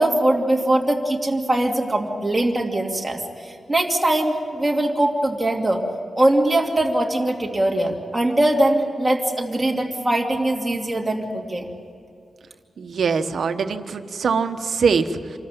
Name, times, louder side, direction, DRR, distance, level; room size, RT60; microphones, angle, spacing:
voice 1, 0.0-5.8 6.2-11.7, right 1 dB, 15° right, 0 dB, 2.6 m, -21 dB
voice 2, 12.8-15.4, right 5 dB, 70° right, 8 dB, 1.2 m, -23 dB
27.0 x 14.0 x 9.0 m, 2.5 s
wide cardioid pair, 145°, 0 cm